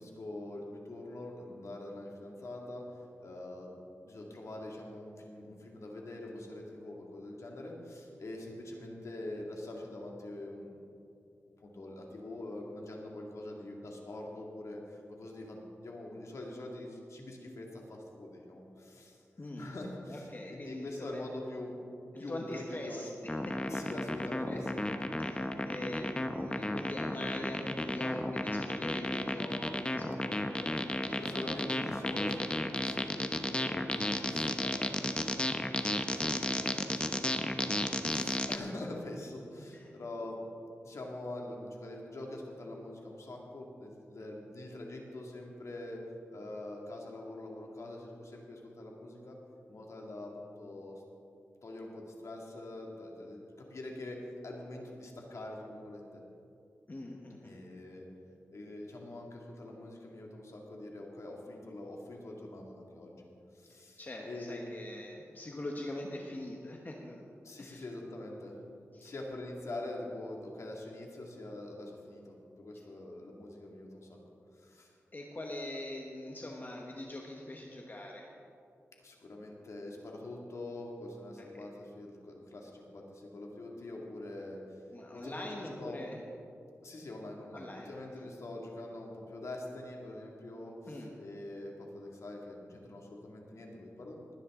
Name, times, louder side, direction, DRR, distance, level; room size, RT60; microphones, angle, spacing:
voice 1, 0.0-2.8 3.2-3.8 4.0-10.8 11.6-19.2 19.6-21.8 22.2-23.0 23.7-24.8 31.2-35.2 35.6-40.4 40.8-46.0 46.3-49.4 49.7-51.0 51.6-56.2 57.4-58.1 58.5-63.2 63.5-64.6 67.4-68.5 69.0-74.2 74.5-74.9 79.0-84.8 85.1-86.1 86.8-94.4, left 1 dB, 65° left, -1 dB, 2.3 m, -44 dB
voice 2, 19.4-19.7 20.1-21.3 22.1-24.6 25.2-31.5 39.7-39.9 56.9-57.6 63.7-67.3 67.6-67.8 68.9-69.1 72.7-72.8 75.1-78.3 81.4-81.6 84.9-86.2 87.5-87.9 90.9-91.1, left 1 dB, 35° left, 0 dB, 1.2 m, -43 dB
sound 1, 23.3-38.6, left 1 dB, 20° left, 0.9 m, -33 dB
20.0 x 10.0 x 3.8 m, 2.6 s
wide cardioid pair, 80°, 5 cm